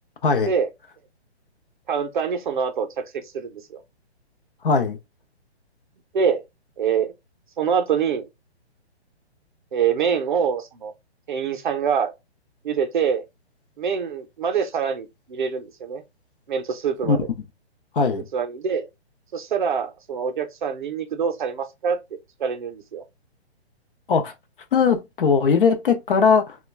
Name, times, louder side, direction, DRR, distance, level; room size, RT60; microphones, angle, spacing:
voice 1, 1.9-2.9 3.1-3.8 6.1-6.4 6.8-7.1 7.6-8.3 9.7-10.9 11.3-12.1 12.6-13.2 13.8-16.0 16.5-17.2 18.3-18.9 19.3-22.0 22.4-23.0, right 6 dB, 45° right, 0.5 m, -25 dB
voice 2, 4.6-5.0 17.0-17.2 17.9-18.3 24.1-24.3 24.7-26.6, left 5 dB, 55° left, 0.6 m, -19 dB
2.3 x 2.2 x 3.1 m
hypercardioid pair, 165°, 33 cm